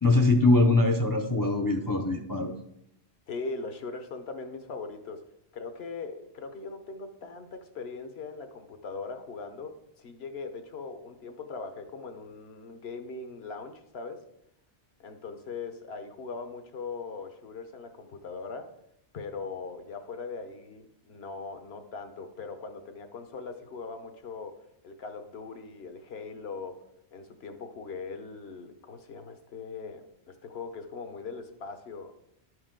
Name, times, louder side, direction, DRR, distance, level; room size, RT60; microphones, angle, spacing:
voice 1, 0.0-2.5, left 2 dB, 30° left, 4 dB, 0.4 m, -22 dB
voice 2, 3.3-5.2 5.5-14.2 15.0-18.7 19.1-26.8 27.1-32.1, left 4 dB, 70° left, 7 dB, 1.1 m, -40 dB
11.5 x 4.8 x 3.7 m, 0.77 s
omnidirectional pair, 1.1 m